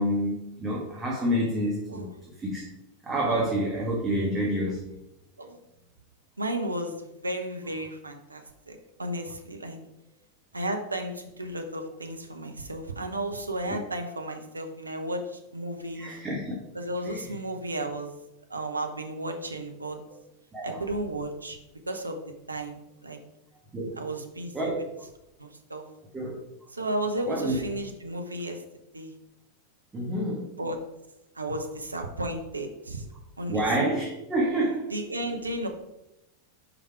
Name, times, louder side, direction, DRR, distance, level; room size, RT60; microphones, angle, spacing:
voice 1, 0.0-2.1 2.4-2.7 3.0-4.8 13.7-13.8 15.9-16.6 17.0-17.4 20.5-20.8 23.7-24.0 24.5-24.8 26.1-26.4 27.3-27.6 29.9-30.5 33.5-34.9, right 1 dB, 15° right, -4 dB, 1.4 m, -28 dB
voice 2, 6.4-9.8 10.5-16.1 16.7-18.1 18.5-20.0 20.6-21.6 21.9-22.2 22.5-23.2 24.0-24.7 25.4-25.8 26.7-28.6 28.9-29.1 30.6-30.8 31.4-33.0 33.4-33.6 34.9-35.7, right 1 dB, 80° right, 4 dB, 0.8 m, -33 dB
5.1 x 5.0 x 4.7 m, 0.88 s
figure-of-eight pair, 90°, 0 cm